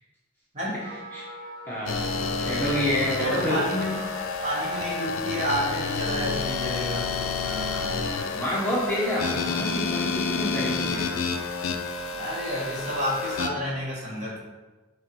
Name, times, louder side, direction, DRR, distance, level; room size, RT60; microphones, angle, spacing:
Wind instrument woodwind instrument, 0.7-8.4, equal, 55° right, 1.1 m, -39 dB
voice 1, 1.7-3.6 7.4-11.1, equal, 10° left, -7 dB, 0.7 m, -29 dB
sound 1, 1.9-13.5, left 4 dB, 80° left, 0.4 m, -29 dB
voice 2, 3.2-4.0 4.4-7.1 12.1-14.4, equal, 35° right, -6 dB, 1.1 m, -30 dB
6.0 x 2.2 x 3.1 m, 1.2 s
head